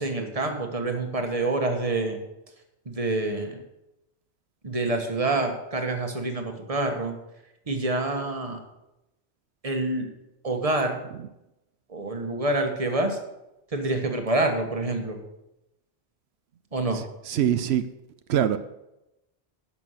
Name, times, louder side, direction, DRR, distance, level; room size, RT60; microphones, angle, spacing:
voice 1, 0.0-2.2 2.8-3.6 4.6-7.1 7.7-8.6 9.6-10.1 10.4-11.0 11.9-13.2 13.7-15.2 16.7-17.0, right 2 dB, 35° right, 4 dB, 1.4 m, -27 dB
voice 2, 16.9-17.8 18.3-18.6, right 10 dB, 90° right, 11 dB, 0.9 m, -24 dB
11.5 x 6.2 x 6.5 m, 0.91 s
omnidirectional pair, 1.1 m